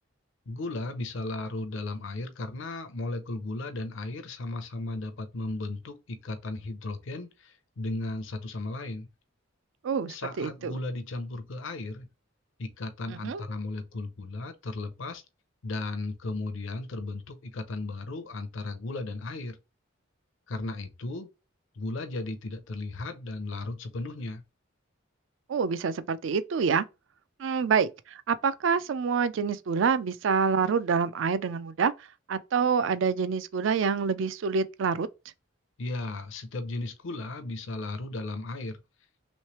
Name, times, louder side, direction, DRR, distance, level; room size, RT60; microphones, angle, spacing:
voice 1, 0.5-9.1 10.1-12.1 12.6-15.2 15.6-19.6 20.5-21.3 21.8-24.4 35.8-38.8, left 2 dB, 65° left, 0.5 m, -35 dB
voice 2, 9.8-10.7 13.1-13.4 25.5-26.8 27.4-31.9 32.3-35.1, right 6 dB, 65° right, 0.3 m, -27 dB
3.2 x 3.1 x 2.9 m
head